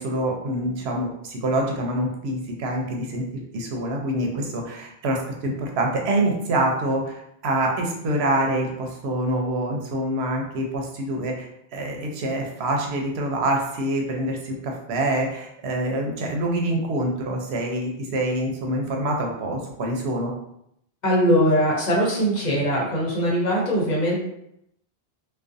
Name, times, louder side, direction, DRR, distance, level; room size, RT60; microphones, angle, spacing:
voice 1, 0.0-3.2 3.5-20.3, right 1 dB, 90° right, 1 dB, 0.9 m, -26 dB
voice 2, 21.0-24.2, equal, 50° left, -3 dB, 0.7 m, -21 dB
2.4 x 2.1 x 2.5 m, 0.76 s
omnidirectional pair, 1.1 m